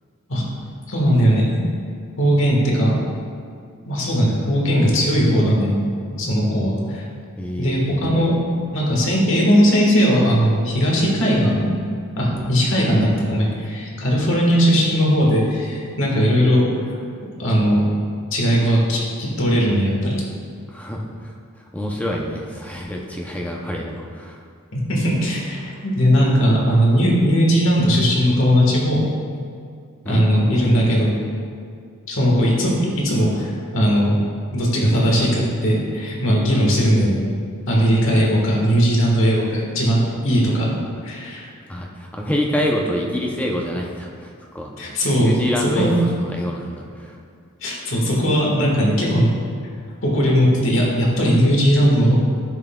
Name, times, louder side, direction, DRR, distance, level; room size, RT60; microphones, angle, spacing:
voice 1, 0.9-1.7 2.2-3.0 3.8-5.8 6.1-7.0 7.6-8.4 8.7-11.7 12.2-16.6 16.9-17.0 17.4-17.8 18.3-19.0 19.4-20.2 24.7-29.1 30.0-31.1 32.1-34.1 34.5-37.2 37.7-40.8 41.0-41.5 44.8-45.9 47.6-49.3 50.0-52.2, equal, 60° left, -3 dB, 1.5 m, -18 dB
voice 2, 7.4-8.0 20.7-21.3 21.7-24.4 30.0-30.3 41.7-47.2, equal, 5° left, -1 dB, 0.6 m, -26 dB
10.5 x 5.8 x 2.3 m, 2.3 s
head